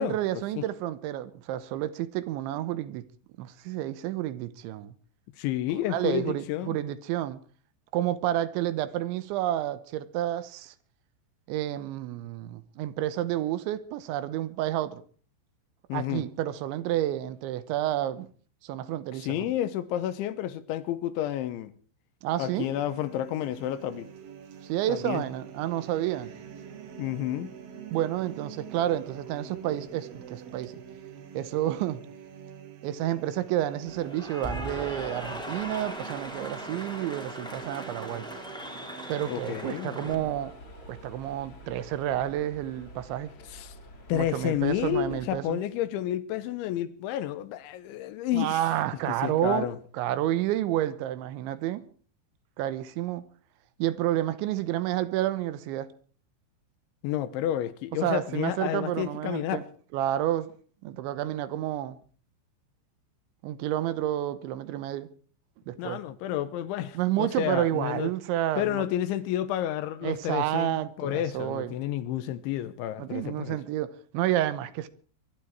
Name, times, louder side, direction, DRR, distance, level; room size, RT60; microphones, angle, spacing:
voice 1, 0.0-3.0 3.4-4.9 5.9-7.4 7.9-10.7 11.5-15.0 15.9-18.3 18.6-19.5 22.2-22.7 24.6-26.3 27.9-30.8 31.3-32.0 32.8-38.3 39.1-40.6 40.9-43.3 44.1-45.6 48.3-51.8 52.6-53.2 53.8-55.9 58.0-59.6 59.9-60.5 60.8-62.0 63.4-65.1 65.7-66.0 66.9-68.9 70.0-71.7 73.0-74.9, right 13 dB, 80° right, 3.2 m, -30 dB
voice 2, 5.4-6.8 15.9-16.3 19.1-21.7 22.4-24.1 24.9-25.2 27.0-27.5 39.3-40.2 43.5-43.8 44.1-48.6 49.2-49.8 57.0-59.6 65.8-68.1 68.6-73.6, left 12 dB, 80° left, 3.3 m, -30 dB
sound 1, 22.4-39.8, right 8 dB, 55° right, 3.4 m, -45 dB
Cheering / Applause, 33.9-40.1, equal, ahead, 1.6 m, -39 dB
sound 2, 40.1-45.4, equal, 35° left, 2.6 m, -48 dB
24.0 x 12.0 x 4.7 m
omnidirectional pair, 5.5 m